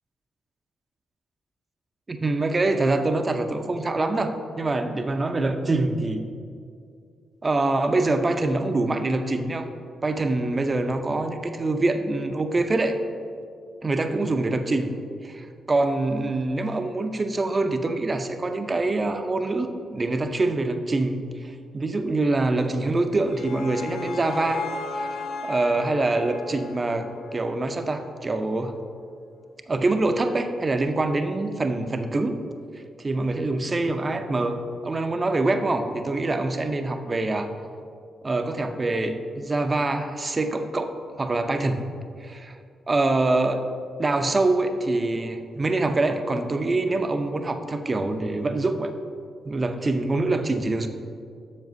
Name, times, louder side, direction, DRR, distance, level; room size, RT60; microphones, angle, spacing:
voice 1, 2.1-6.3 7.4-9.7 10.0-13.0 13.8-14.9 15.2-28.7 29.7-32.4 33.0-34.6 34.8-37.5 38.2-40.9 41.2-41.9 42.2-42.6 42.9-43.6 44.0-48.9 49.4-50.9, right 2 dB, 35° right, 7 dB, 0.6 m, -25 dB
sound 1, 22.9-28.1, left 3 dB, 75° left, 0.4 m, -35 dB
7.4 x 7.0 x 2.6 m, 2.3 s
supercardioid pair, 60°, 0 cm